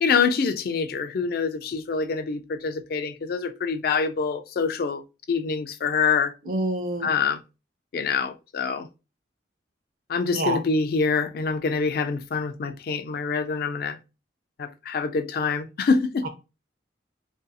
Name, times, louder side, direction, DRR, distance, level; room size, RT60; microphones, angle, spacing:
voice 1, 0.0-5.0 5.3-6.3 7.0-7.4 7.9-8.9 10.1-14.0 14.6-16.3, left 5 dB, 50° left, 0.3 m, -25 dB
voice 2, 6.5-7.1 10.3-10.6, right 1 dB, 50° right, 0.5 m, -26 dB
2.6 x 2.6 x 2.2 m
head